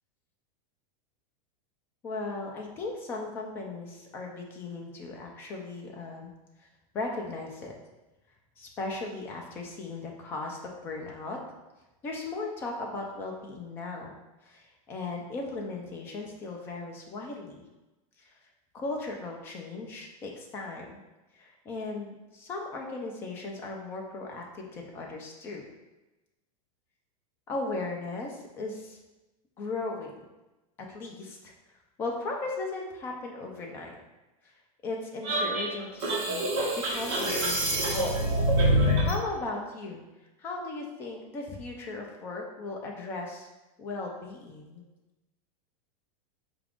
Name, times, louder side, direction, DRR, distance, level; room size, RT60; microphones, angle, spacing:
voice 1, 2.0-6.3 6.9-7.7 8.6-11.4 12.0-14.1 14.4-17.6 18.7-21.0 21.3-25.6 27.5-29.0 29.6-30.1 30.9-31.5 32.0-34.0 34.8-36.5 36.7-38.2 39.0-40.0 40.4-43.5 43.8-44.8, left 3 dB, 10° left, 0 dB, 0.3 m, -37 dB
sound 1, 35.2-39.2, right 1 dB, 35° right, 0.9 m, -26 dB
4.8 x 2.4 x 3.5 m, 1.1 s
supercardioid pair, 175°, 19 cm